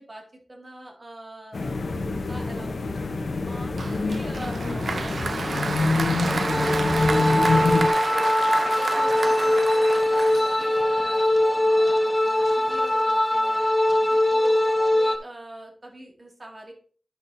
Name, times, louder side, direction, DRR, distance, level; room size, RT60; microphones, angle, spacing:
voice 1, 0.0-1.8 2.0-3.0 3.5-4.6 4.9-8.4 8.7-13.7 14.0-16.7, right 1 dB, 50° right, 0 dB, 2.2 m, -43 dB
sound 1, 1.5-7.9, left 3 dB, 90° left, 0.8 m, -26 dB
Applause, 3.8-10.9, right 4 dB, 85° right, 0.6 m, -30 dB
sound 2, 6.2-15.2, left 1 dB, 20° left, 0.9 m, -22 dB
10.5 x 5.7 x 2.7 m, 0.42 s
wide cardioid pair, 55°, 0 cm